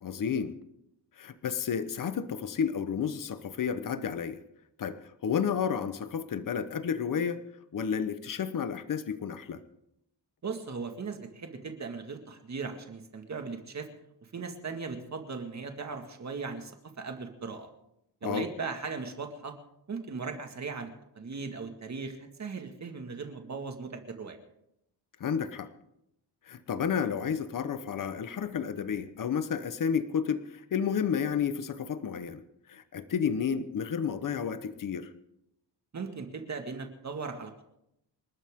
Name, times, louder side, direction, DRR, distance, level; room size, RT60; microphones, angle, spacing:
voice 1, 0.0-0.6 1.2-4.4 4.8-7.4 7.7-9.6 18.2-18.5 25.2-25.7 26.5-32.4 32.7-35.1, left 7 dB, 50° left, 11 dB, 1.2 m, -31 dB
voice 2, 10.4-13.9 14.3-17.7 18.2-19.5 19.9-20.9 21.2-24.4 35.9-37.6, right 4 dB, 40° right, 4 dB, 2.0 m, -38 dB
28.0 x 12.5 x 3.8 m, 0.82 s
cardioid pair, 120°, 43 cm